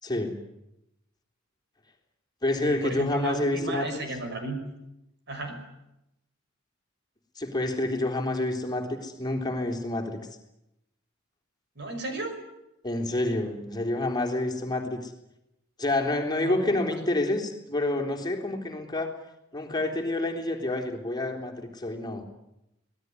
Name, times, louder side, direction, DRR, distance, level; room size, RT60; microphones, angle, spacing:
voice 1, 0.0-0.4 2.4-4.0 7.4-10.2 12.8-15.1 15.8-19.2 19.5-22.2, left 2 dB, 20° left, 2 dB, 3.6 m, -28 dB
voice 2, 2.6-4.6 5.3-5.6 11.8-12.4 16.4-16.6, right 2 dB, 55° right, 6 dB, 5.9 m, -33 dB
26.5 x 19.5 x 9.7 m, 0.87 s
head